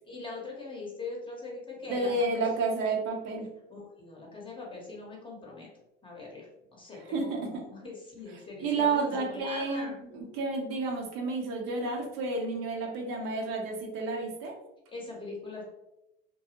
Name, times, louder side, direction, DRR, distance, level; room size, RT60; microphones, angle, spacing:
voice 1, 0.0-2.5 3.7-5.7 6.0-10.0 14.9-15.6, left 3 dB, 15° left, -2 dB, 0.8 m, -42 dB
voice 2, 1.9-3.5 6.9-7.6 8.6-14.5, right 3 dB, 60° right, 1 dB, 0.7 m, -31 dB
2.2 x 2.0 x 2.8 m, 0.91 s
supercardioid pair, 95°, 29 cm